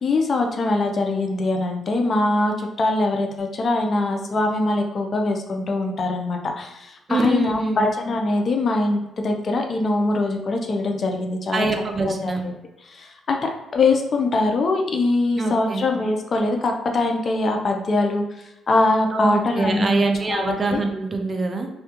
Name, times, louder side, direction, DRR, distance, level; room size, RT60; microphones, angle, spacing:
voice 1, 0.0-11.7 12.0-12.5 12.9-20.8, left 2 dB, 45° left, 3 dB, 0.4 m, -23 dB
voice 2, 7.1-7.9 11.5-12.5 15.4-15.9 19.1-21.7, right 3 dB, 35° right, 4 dB, 0.4 m, -24 dB
2.3 x 2.1 x 2.8 m, 0.93 s
cardioid pair, 90°, 0 cm